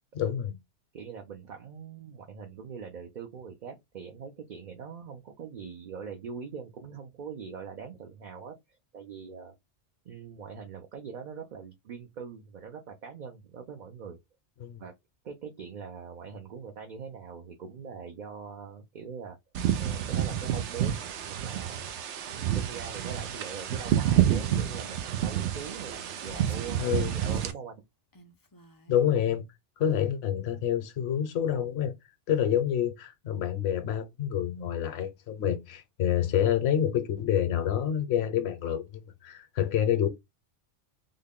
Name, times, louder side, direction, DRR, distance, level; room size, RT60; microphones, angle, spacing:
voice 1, 0.1-0.6 14.6-14.8 26.8-27.1 28.9-29.4 29.8-31.9 32.3-40.1, left 10 dB, 65° left, 0.9 m, -27 dB
voice 2, 0.9-9.5 10.0-14.2 14.8-14.9 15.2-19.4 19.8-21.9 22.3-27.8, right 6 dB, 50° right, 0.6 m, -42 dB
sound 1, 19.5-27.5, right 11 dB, 75° right, 0.9 m, -29 dB
Female speech woman speaking, 24.3-25.0 26.1-27.6 28.1-29.0, left 3 dB, 35° left, 0.3 m, -51 dB
3.7 x 2.1 x 3.5 m
omnidirectional pair, 1.2 m